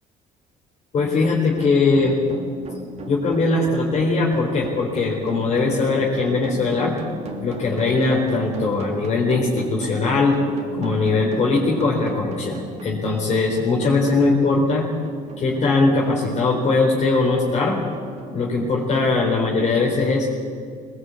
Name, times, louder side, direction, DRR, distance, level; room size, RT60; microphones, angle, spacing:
voice 1, 0.9-2.2 3.1-6.9 7.4-10.4 10.7-14.9 15.4-17.8 18.3-20.3, left 3 dB, 45° left, -3 dB, 4.1 m, -20 dB
sound 1, 0.9-20.2, right 2 dB, 45° right, 3.0 m, -37 dB
21.0 x 18.5 x 8.5 m, 2.2 s
cardioid pair, 110°, 16 cm